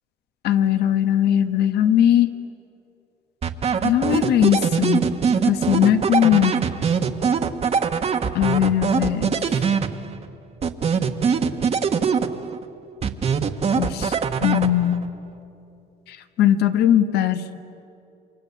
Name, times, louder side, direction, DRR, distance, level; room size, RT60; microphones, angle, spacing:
voice 1, 0.4-2.3 3.8-5.0 5.5-6.5 8.3-9.6 13.8-14.1 14.4-15.0 16.1-17.4, left 10 dB, 75° left, 9 dB, 1.5 m, -19 dB
sound 1, 3.4-10.3 10.6-12.6 13.0-15.1, right 6 dB, 40° right, 1.4 m, -22 dB
28.5 x 24.0 x 8.5 m, 2.8 s
cardioid pair, 110°, 17 cm